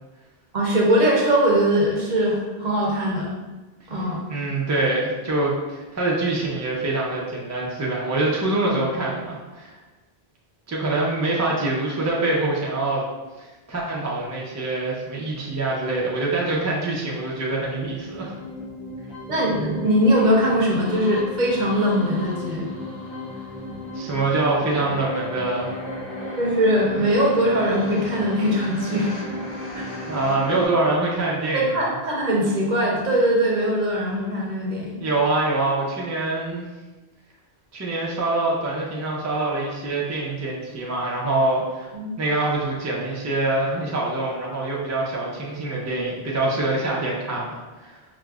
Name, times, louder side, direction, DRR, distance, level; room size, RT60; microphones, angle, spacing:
voice 1, 0.5-3.3 3.9-4.3 19.3-22.7 26.4-29.1 29.8-29.9 31.5-35.0 41.9-42.1, equal, 50° right, -3 dB, 0.7 m, -21 dB
voice 2, 4.3-9.7 10.7-13.0 13.4-18.3 23.9-25.7 30.1-31.9 35.0-36.6 37.7-41.9 42.2-47.9, right 2 dB, 30° right, -4 dB, 0.3 m, -25 dB
sound 1, 17.4-30.7, left 1 dB, 65° left, 1.7 m, -34 dB
4.9 x 2.0 x 2.3 m, 1.2 s
omnidirectional pair, 1.1 m